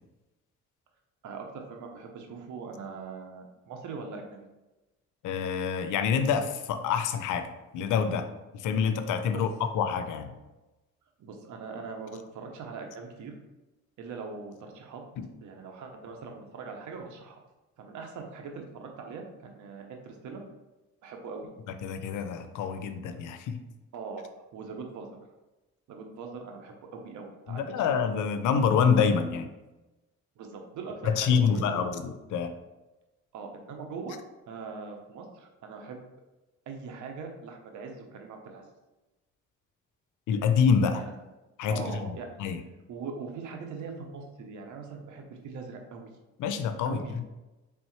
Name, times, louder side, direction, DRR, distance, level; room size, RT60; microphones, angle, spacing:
voice 1, 1.2-4.4 9.3-9.4 11.2-13.3 14.0-15.0 15.4-17.4 17.8-20.4 21.0-21.5 23.9-25.1 25.9-27.8 30.4-31.9 33.3-34.2 34.5-36.0 36.7-38.7 40.9-41.1 41.7-42.3 42.9-46.0 46.8-47.2, right 4 dB, 75° right, 3 dB, 0.9 m, -41 dB
voice 2, 5.2-8.3 8.5-10.3 15.2-15.3 21.7-23.6 27.5-29.5 31.0-32.5 40.3-41.0 41.6-41.8 42.4-42.6 46.4-47.0, left 6 dB, 80° left, 9 dB, 0.5 m, -26 dB
4.2 x 3.4 x 3.1 m, 1.1 s
cardioid pair, 90°, 30 cm